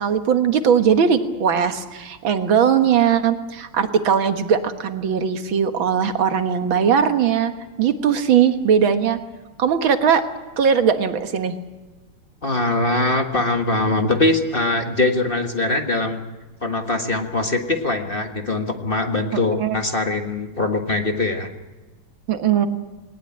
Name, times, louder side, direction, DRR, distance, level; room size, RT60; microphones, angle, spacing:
voice 1, 0.0-7.5 7.8-9.2 9.6-10.2 10.6-11.6 19.3-19.8 22.3-22.7, right 7 dB, 75° right, 8 dB, 2.2 m, -19 dB
voice 2, 12.4-16.2 16.6-21.5, left 2 dB, 30° left, 5 dB, 1.6 m, -22 dB
20.0 x 19.0 x 8.8 m, 1.2 s
omnidirectional pair, 2.2 m